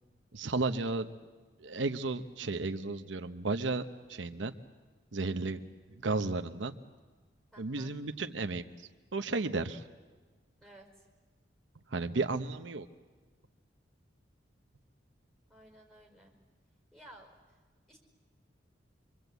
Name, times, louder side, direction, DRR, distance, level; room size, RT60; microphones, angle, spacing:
voice 1, 0.3-1.1 1.6-4.5 5.1-5.6 6.0-6.7 7.6-8.6 9.1-9.8 11.9-12.9, right 3 dB, 80° right, 8 dB, 0.9 m, -33 dB
voice 2, 7.5-7.9 10.6-11.1 15.5-16.4 16.9-17.6 17.9-18.0, right 1 dB, ahead, 2 dB, 4.8 m, -55 dB
25.0 x 24.5 x 8.1 m, 1.4 s
head